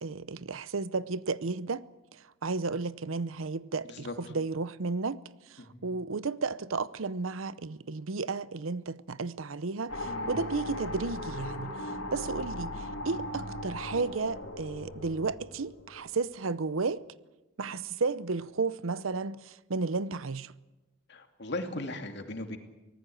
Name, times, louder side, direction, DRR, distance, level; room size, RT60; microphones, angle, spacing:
voice 1, 0.0-1.8 2.1-5.2 5.5-17.0 17.6-20.5, right 4 dB, 80° right, 0.7 m, -33 dB
sound 1, 9.9-16.3, left 1 dB, 90° left, 3.4 m, -38 dB
voice 2, 21.1-22.6, left 2 dB, 55° left, 2.6 m, -38 dB
24.5 x 18.5 x 7.8 m
head